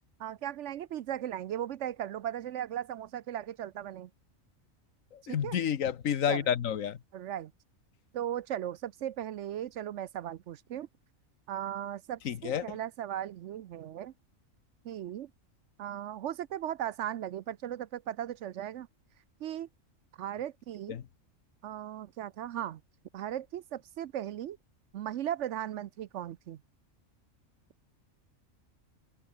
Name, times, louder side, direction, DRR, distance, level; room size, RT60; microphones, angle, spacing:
voice 1, 0.2-4.1 5.3-5.6 6.3-6.5 7.1-7.5 8.1-10.9 11.5-14.1 14.8-15.3 15.8-18.9 19.4-19.7 20.2-20.9 21.6-22.8 23.1-24.6 24.9-26.6, right 11 dB, 70° right, 0.9 m, -37 dB
voice 2, 5.1-7.0 12.2-12.6 20.9-21.0, left 9 dB, 75° left, 1.4 m, -30 dB
open air
omnidirectional pair, 1.4 m